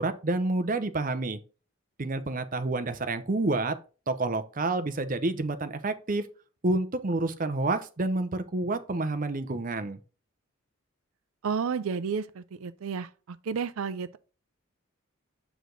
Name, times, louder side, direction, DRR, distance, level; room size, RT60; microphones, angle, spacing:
voice 1, 0.0-1.4 2.0-3.8 4.1-6.3 6.6-10.0, right 2 dB, 40° right, 0.7 m, -29 dB
voice 2, 11.4-14.2, right 6 dB, 75° right, 0.4 m, -32 dB
7.9 x 5.0 x 3.8 m
head